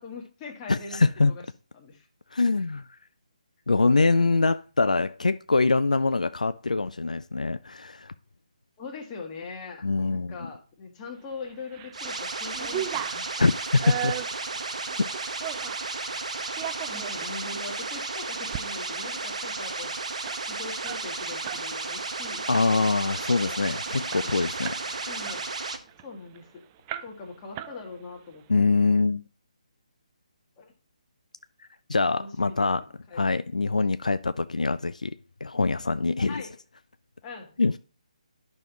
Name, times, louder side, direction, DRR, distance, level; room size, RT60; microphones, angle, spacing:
voice 1, 0.0-1.4 1.7-2.1 4.1-4.4 8.8-13.2 16.9-19.9 20.5-22.5 23.3-23.6 25.1-25.5 26.0-26.7 27.0-28.4 30.6-30.7 32.1-32.7 33.1-33.4 36.3-36.6 37.2-37.6, left 4 dB, 20° left, 1.5 m, -41 dB
voice 2, 0.7-1.3 2.3-2.9 3.7-8.1 9.8-10.4 13.4-14.2 22.5-25.1 28.5-29.2 31.9-32.9 33.1-36.4 37.6-37.7, left 3 dB, 80° left, 0.4 m, -24 dB
sound 1, 11.4-12.0 12.3-15.9 16.4-17.4 17.8-17.9 18.3-18.7 19.0-19.1 19.3-21.7 22.0-22.2 22.5-23.0 23.4-23.5 23.8-24.9 25.3-26.4 26.9-27.3 27.6-28.2, right 11 dB, 20° right, 0.3 m, -37 dB
sound 2, 11.9-25.8, right 3 dB, 65° right, 1.1 m, -33 dB
10.5 x 5.3 x 2.9 m
figure-of-eight pair, 145°, 4 cm